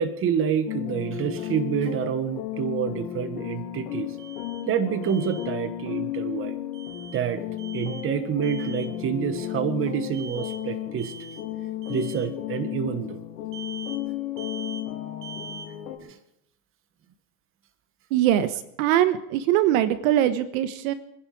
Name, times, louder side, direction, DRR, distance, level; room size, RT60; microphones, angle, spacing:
voice 1, 0.0-4.1 4.7-6.5 7.1-7.4 7.7-11.1 11.9-13.2 16.0-16.2, right 8 dB, 25° right, 10 dB, 1.4 m, -28 dB
sound 1, 0.7-16.0, left 12 dB, 90° left, 2.7 m, -33 dB
Alarm, 4.2-4.6 5.0-5.5 6.7-7.2 7.6-8.1 8.4-8.9 10.1-10.6 11.0-11.4 11.8-12.3 13.5-14.0 14.4-14.8 15.2-15.7, right 6 dB, 85° right, 4.0 m, -42 dB
voice 2, 18.1-18.5 18.8-20.9, right 12 dB, 60° right, 12 dB, 1.3 m, -22 dB
25.5 x 11.0 x 4.9 m, 0.78 s
supercardioid pair, 140°, 47 cm